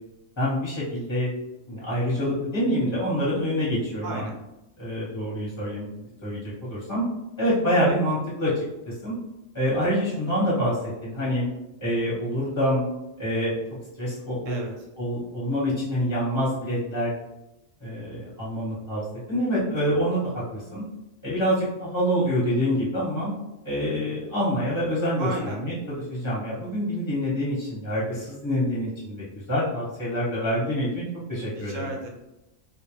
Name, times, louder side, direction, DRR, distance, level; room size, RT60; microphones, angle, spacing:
voice 1, 0.4-1.3 1.7-4.3 4.8-5.9 6.2-6.4 6.7-7.0 7.4-8.5 8.9-9.1 9.5-11.5 11.8-12.8 13.2-13.5 14.0-14.6 15.0-17.1 17.8-20.8 21.2-23.3 23.6-31.0 31.3-31.8, equal, 15° left, -8 dB, 0.7 m, -26 dB
voice 2, 4.0-4.4 14.5-14.7 25.2-25.6 31.6-32.1, right 2 dB, 75° right, 1 dB, 0.9 m, -33 dB
2.5 x 2.0 x 3.1 m, 0.92 s
omnidirectional pair, 1.4 m